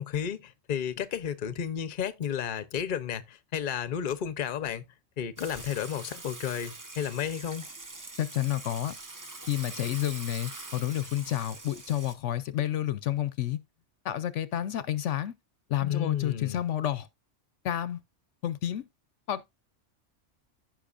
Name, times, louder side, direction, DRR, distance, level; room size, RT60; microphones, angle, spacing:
voice 1, 0.0-4.8 5.2-7.7 15.8-16.6, left 9 dB, 50° left, 0.8 m, -32 dB
Water / Water tap faucet / Sink (filling or washing), 5.4-12.1, right 2 dB, 20° right, 0.7 m, -44 dB
voice 2, 8.2-9.0 9.4-13.6 14.0-15.3 15.7-17.1 17.6-18.0 18.4-18.9 19.3-19.5, left 12 dB, 75° left, 0.9 m, -30 dB
15.0 x 5.5 x 2.5 m
omnidirectional pair, 1.3 m